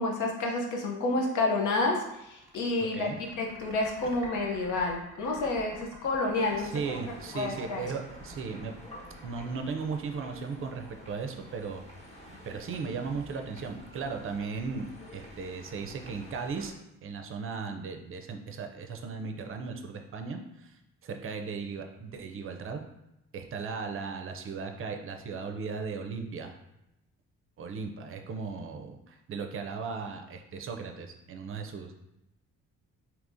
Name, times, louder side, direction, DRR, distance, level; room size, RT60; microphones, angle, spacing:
voice 1, 0.0-7.0 7.3-7.8, left 2 dB, 80° left, 1 dB, 0.8 m, -29 dB
sound 1, 2.0-10.7, right 1 dB, 10° right, 1.1 m, -50 dB
voice 2, 2.8-3.2 6.6-8.7 9.2-11.8 12.4-16.7 17.0-22.8 23.3-26.6 27.6-31.9, right 5 dB, 45° right, 5 dB, 0.5 m, -37 dB
sound 2, 6.3-16.7, equal, 20° left, 1.1 m, -49 dB
3.5 x 2.8 x 2.6 m, 0.87 s
cardioid pair, 90°, 30 cm